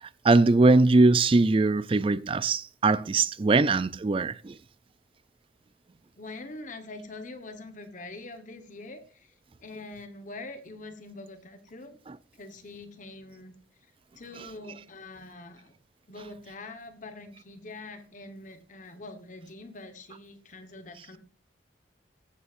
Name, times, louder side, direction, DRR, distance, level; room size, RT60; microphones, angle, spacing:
voice 1, 0.2-4.6 12.1-12.2, right 3 dB, 25° right, 0.3 m, -21 dB
voice 2, 6.2-9.3 9.6-12.0 12.3-13.5 14.2-15.7 16.1-21.2, left 2 dB, 40° left, 1.2 m, -44 dB
16.0 x 8.3 x 2.5 m
head